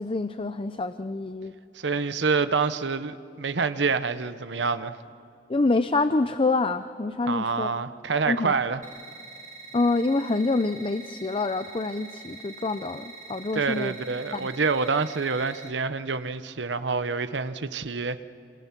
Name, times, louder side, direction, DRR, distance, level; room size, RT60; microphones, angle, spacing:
voice 1, 0.0-1.5 5.5-7.7 8.3-8.5 9.7-14.0 14.3-14.5, left 3 dB, 30° left, 11 dB, 0.5 m, -26 dB
voice 2, 1.8-5.0 7.3-8.8 13.5-18.2, right 4 dB, 75° right, 11 dB, 0.9 m, -27 dB
sound 1, 8.8-15.7, right 3 dB, 40° right, 2.5 m, -44 dB
27.5 x 26.0 x 6.0 m, 2.6 s
head